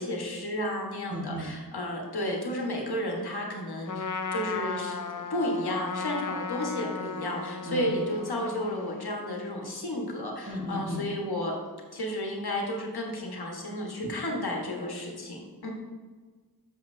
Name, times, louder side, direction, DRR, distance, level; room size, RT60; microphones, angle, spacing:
voice 1, 0.0-11.5 11.9-15.7, left 1 dB, 90° left, -1 dB, 1.4 m, -32 dB
voice 2, 1.1-1.6 7.6-7.8 10.5-11.1, equal, 40° right, -1 dB, 1.5 m, -35 dB
Trumpet, 3.9-9.1, left 5 dB, 60° left, 0.6 m, -36 dB
7.6 x 7.3 x 2.7 m, 1.4 s
wide cardioid pair, 55°, 37 cm